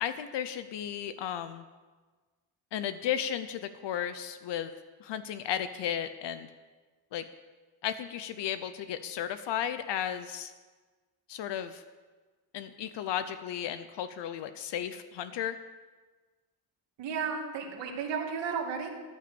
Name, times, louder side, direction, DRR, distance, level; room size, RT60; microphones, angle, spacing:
voice 1, 0.0-1.6 2.7-4.7 5.0-6.5 7.1-7.3 7.8-10.5 11.3-11.8 12.5-15.6, left 10 dB, 75° left, 11 dB, 0.9 m, -34 dB
voice 2, 17.0-18.9, right 6 dB, 90° right, 1 dB, 2.5 m, -33 dB
15.0 x 10.5 x 7.0 m, 1.3 s
cardioid pair, 135°, 42 cm